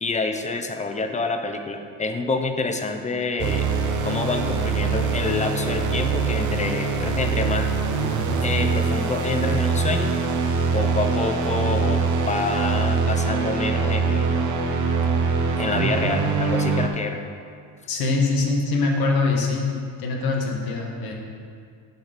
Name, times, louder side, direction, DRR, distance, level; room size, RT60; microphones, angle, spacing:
voice 1, 0.0-3.7 4.0-7.7 8.4-10.1 10.7-14.4 15.6-17.2, left 3 dB, 15° left, 6 dB, 0.7 m, -27 dB
sound 1, 3.4-16.9, right 4 dB, 45° right, 1.0 m, -23 dB
voice 2, 17.9-19.7 20.0-21.1, left 3 dB, 55° left, 0 dB, 1.8 m, -23 dB
11.5 x 3.9 x 5.2 m, 2.2 s
supercardioid pair, 95°, 42 cm